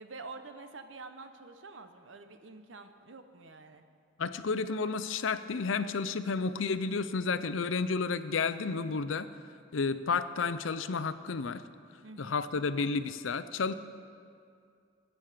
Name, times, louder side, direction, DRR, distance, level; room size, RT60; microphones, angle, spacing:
voice 1, 0.0-3.8 12.0-12.4, right 3 dB, 70° right, 8 dB, 0.9 m, -47 dB
voice 2, 4.2-9.3 9.7-11.6 12.2-13.7, left 4 dB, 75° left, 12 dB, 0.6 m, -31 dB
19.0 x 8.8 x 5.1 m, 2.3 s
head